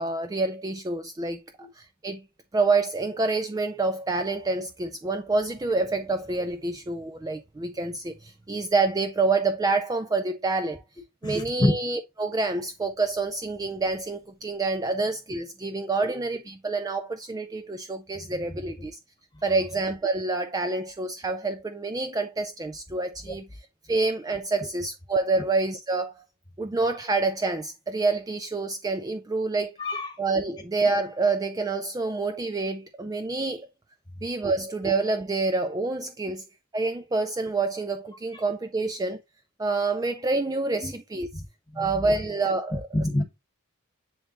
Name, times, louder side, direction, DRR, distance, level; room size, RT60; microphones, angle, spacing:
voice 1, 0.0-2.2 2.5-10.8 11.2-19.0 19.4-23.6 23.9-26.2 26.6-29.8 30.2-33.7 34.2-36.4 36.7-39.2 39.6-41.3 41.8-43.2, right 3 dB, 15° right, 0.3 m, -27 dB
voice 2, 11.2-11.7 18.3-18.5 18.8-18.9 23.2-23.4 29.8-30.2 30.5-30.6 38.3-38.4 40.8-40.9 41.3-41.4 41.7-42.2 42.9-43.2, left 1 dB, 20° left, 1.1 m, -28 dB
9.8 x 3.3 x 2.9 m
head